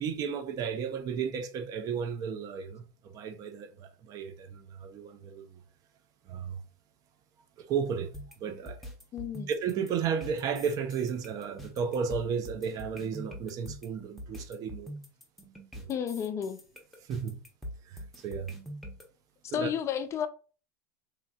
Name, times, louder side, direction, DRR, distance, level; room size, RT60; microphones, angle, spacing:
voice 1, 0.0-5.6 6.3-6.6 7.6-8.1 8.4-8.9 9.5-14.9 15.7-15.9 17.1-17.4 17.9-18.5 19.5-19.7, right 6 dB, 40° right, 0.5 m, -33 dB
sound 1, 8.1-19.0, equal, ahead, 0.8 m, -44 dB
voice 2, 9.1-9.5 15.9-16.6 19.5-20.3, left 8 dB, 30° left, 0.3 m, -32 dB
3.1 x 2.4 x 2.3 m
hypercardioid pair, 95°, 9 cm